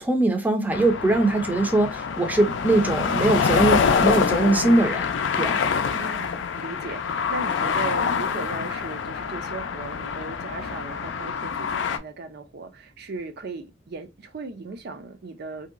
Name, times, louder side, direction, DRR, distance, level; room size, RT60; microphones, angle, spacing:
voice 1, 0.0-5.1 5.4-5.6, right 2 dB, 10° right, 0.5 m, -21 dB
sound 1, 0.7-12.0, left 6 dB, 70° left, 0.4 m, -26 dB
voice 2, 5.9-15.7, right 3 dB, 55° right, 0.5 m, -37 dB
2.9 x 2.7 x 2.4 m
head